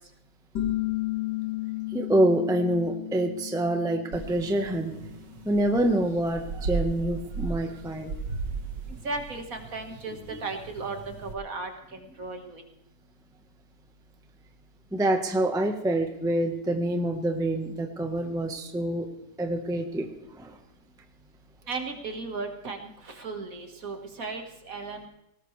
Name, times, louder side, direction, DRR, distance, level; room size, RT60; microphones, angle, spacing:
sound 1, 0.6-6.0, left 15 dB, 75° left, 2.6 m, -34 dB
voice 1, 1.9-4.9 5.4-8.1 10.3-10.4 14.9-19.1 19.4-20.6, right 1 dB, 5° right, 5 dB, 0.9 m, -26 dB
sound 2, 4.1-11.3, right 4 dB, 75° right, 2.0 m, -37 dB
voice 2, 8.9-11.0 11.2-11.7 12.2-12.6 21.7-25.1, right 3 dB, 50° right, 5 dB, 2.0 m, -35 dB
19.0 x 18.5 x 3.3 m, 0.84 s
omnidirectional pair, 1.9 m